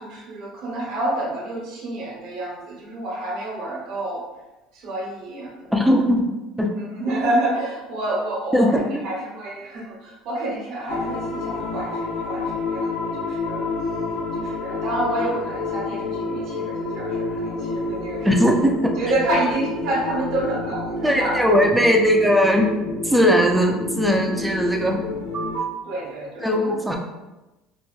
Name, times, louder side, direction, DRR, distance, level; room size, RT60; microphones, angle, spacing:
voice 1, 0.0-4.2 4.7-5.7 6.7-13.7 14.4-18.3 19.0-21.4 25.3-27.0, right 1 dB, 60° right, -5 dB, 0.9 m, -28 dB
voice 2, 5.7-6.3 6.6-6.7 8.5-9.0 18.2-18.9 21.0-22.7 23.0-25.0 26.4-27.0, equal, 5° right, 1 dB, 0.3 m, -19 dB
sound 1, 10.9-25.6, left 3 dB, 75° left, 0.7 m, -29 dB
2.8 x 2.2 x 2.3 m, 1.0 s
cardioid pair, 135°, 0 cm